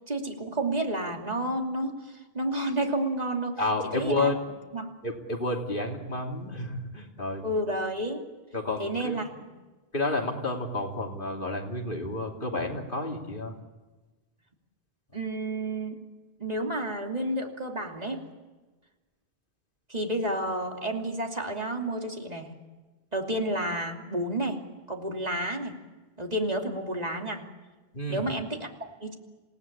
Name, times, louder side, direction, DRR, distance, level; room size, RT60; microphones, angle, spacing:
voice 1, 0.1-3.6 3.9-4.3 4.7-4.9 7.4-8.3 8.8-9.4 15.1-16.0 16.4-18.3 19.9-22.5 23.1-24.6 24.9-25.8 26.2-27.5 28.1-29.1, right 1 dB, 40° right, 2 dB, 2.8 m, -30 dB
voice 2, 3.6-4.3 5.0-7.4 8.5-9.2 9.9-13.5 27.9-28.3, left 2 dB, 55° left, 1 dB, 3.2 m, -30 dB
27.5 x 18.0 x 8.7 m, 1.2 s
omnidirectional pair, 1.1 m